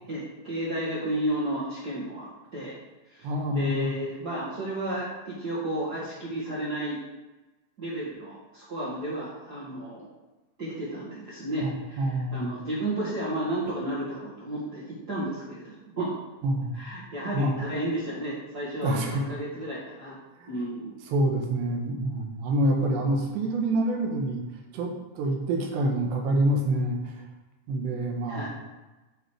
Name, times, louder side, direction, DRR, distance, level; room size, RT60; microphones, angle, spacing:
voice 1, 0.1-2.8 3.1-7.0 7.8-10.1 10.6-12.0 12.3-16.2 16.7-20.2 20.5-21.0 28.3-28.5, right 1 dB, 60° right, -9 dB, 1.0 m, -32 dB
voice 2, 3.2-3.9 11.6-12.5 16.4-16.8 17.3-17.6 18.8-19.2 20.4-20.5 21.1-24.4 24.7-27.2 27.7-28.5, right 1 dB, 80° right, 2 dB, 3.4 m, -27 dB
9.4 x 4.8 x 4.7 m, 1.1 s
omnidirectional pair, 4.9 m